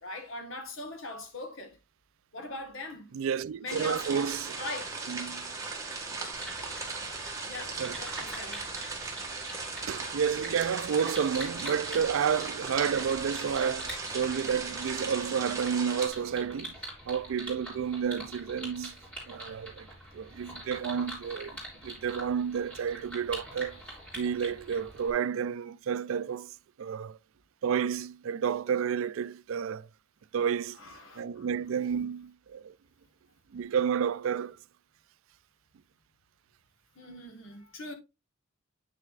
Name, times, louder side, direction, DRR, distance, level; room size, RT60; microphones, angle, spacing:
voice 1, 0.0-1.8 2.3-3.1 3.6-4.2 4.6-4.9 7.4-8.8 30.8-31.5 36.9-37.9, left 2 dB, 70° left, 1.5 m, -41 dB
voice 2, 3.1-4.6 5.1-5.5 7.8-8.0 9.8-16.7 17.1-19.0 19.3-19.9 20.1-21.6 21.8-23.8 24.2-26.5 26.8-27.2 27.6-29.9 30.3-30.8 31.2-32.7 33.5-34.6, right 7 dB, 80° right, 0.3 m, -30 dB
sound 1, 3.7-16.1, right 3 dB, 15° right, 1.6 m, -38 dB
sound 2, 6.3-25.1, right 1 dB, 5° left, 3.3 m, -44 dB
8.4 x 6.3 x 2.4 m
head